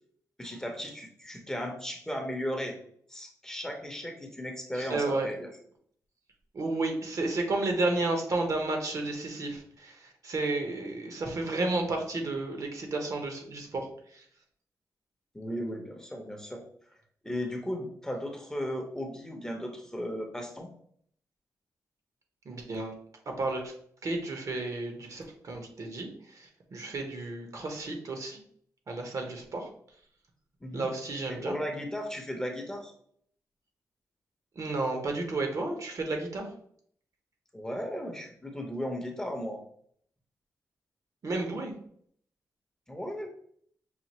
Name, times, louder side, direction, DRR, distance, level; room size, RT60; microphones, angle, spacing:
voice 1, 0.4-2.8 3.1-5.5 15.3-16.6 17.2-20.7 30.6-30.9 31.3-32.9 37.5-39.6 42.9-43.3, equal, 10° left, 2 dB, 0.7 m, -36 dB
voice 2, 4.8-5.3 6.5-13.9 14.1-14.2 22.4-22.9 23.4-23.7 24.0-28.4 28.9-29.7 30.7-31.5 34.6-36.5 41.2-41.7, right 2 dB, 55° right, 3 dB, 0.9 m, -32 dB
5.7 x 2.4 x 2.9 m, 0.63 s
wide cardioid pair, 110°, 7 cm